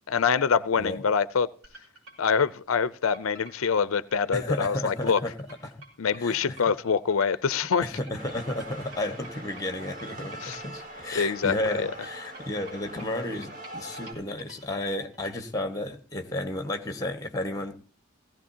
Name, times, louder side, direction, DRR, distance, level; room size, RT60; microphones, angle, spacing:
voice 1, 0.1-1.5 2.2-5.2 6.0-7.9 10.4-10.6 11.1-11.9, left 6 dB, 80° left, 0.5 m, -25 dB
sound 1, 1.6-15.4, right 2 dB, 85° right, 5.5 m, -50 dB
voice 2, 4.3-5.3 5.6-5.8 6.2-6.6 7.8-17.7, left 1 dB, 15° left, 1.5 m, -32 dB
sound 2, 8.2-14.1, right 1 dB, 40° right, 2.9 m, -42 dB
17.5 x 16.0 x 2.8 m
head